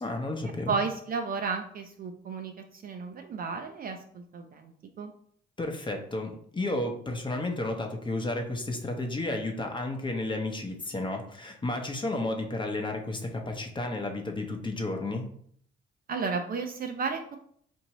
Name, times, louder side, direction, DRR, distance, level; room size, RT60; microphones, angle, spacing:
voice 1, 0.0-0.8 5.6-15.3, left 2 dB, 25° left, 3 dB, 0.8 m, -32 dB
voice 2, 0.7-4.7 5.0-5.1 16.1-17.4, right 5 dB, 45° right, 5 dB, 0.5 m, -33 dB
4.3 x 2.7 x 2.9 m, 0.62 s
cardioid pair, 90°, 20 cm